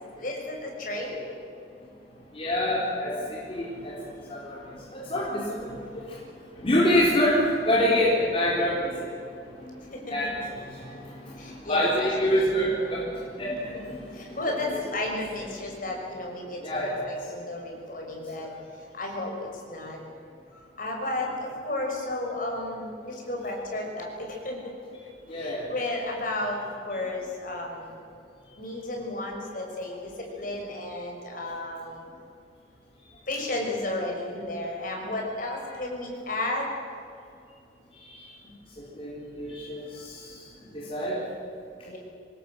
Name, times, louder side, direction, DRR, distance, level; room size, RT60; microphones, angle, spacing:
voice 1, 0.2-1.4 9.9-10.2 11.4-12.1 12.3-12.4 14.1-18.5 18.9-20.0 20.8-24.7 25.3-26.6 26.8-28.0 28.6-32.0 33.3-36.7 41.9-42.0, left 2 dB, 50° left, 0 dB, 6.2 m, -33 dB
voice 2, 2.3-6.2 6.5-9.1 9.5-14.4 16.6-17.0 18.4-18.5 25.3-25.7 35.6-35.8 38.0-38.3 38.8-40.5 40.7-41.2, equal, 30° left, -5 dB, 4.2 m, -27 dB
25.0 x 20.0 x 8.0 m, 2.5 s
head